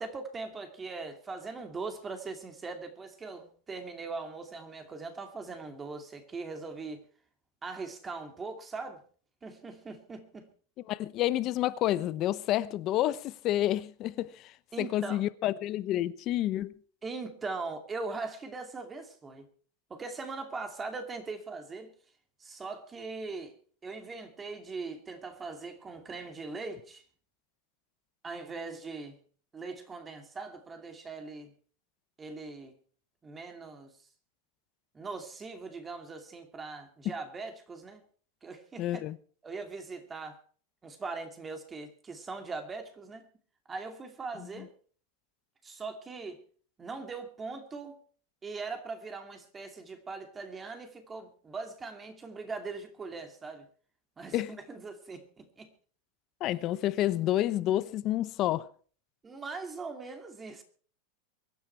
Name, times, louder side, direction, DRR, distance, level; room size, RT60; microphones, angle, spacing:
voice 1, 0.0-7.0 7.6-9.0 9.4-10.5 14.7-15.2 17.0-19.5 19.9-21.9 22.4-23.5 23.8-27.0 28.2-29.2 29.5-31.5 32.2-32.7 33.2-33.9 34.9-38.0 38.4-39.0 39.4-40.4 40.8-43.2 43.7-44.7 45.6-46.4 46.8-48.0 48.4-53.7 54.2-55.7 59.2-60.6, right 4 dB, 15° right, 2.5 m, -40 dB
voice 2, 10.9-16.7 37.0-37.1 38.8-39.2 54.3-54.5 56.4-58.7, left 14 dB, 35° left, 0.8 m, -29 dB
23.5 x 10.0 x 4.5 m
supercardioid pair, 150°, 0 cm